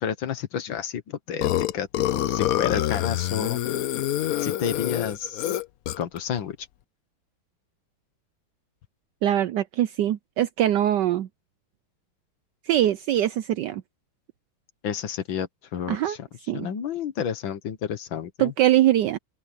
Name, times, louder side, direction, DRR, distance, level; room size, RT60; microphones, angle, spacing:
voice 1, 0.0-3.6 4.4-5.6 6.0-6.7 14.8-16.3 16.5-18.5, left 8 dB, 65° left, 1.9 m, -30 dB
Burping eructation, 1.4-6.2, left 13 dB, 90° left, 0.7 m, -26 dB
voice 2, 9.2-11.3 12.7-13.8 15.9-16.2 16.5-16.7 18.4-19.2, right 12 dB, 75° right, 1.0 m, -22 dB
open air
omnidirectional pair, 2.3 m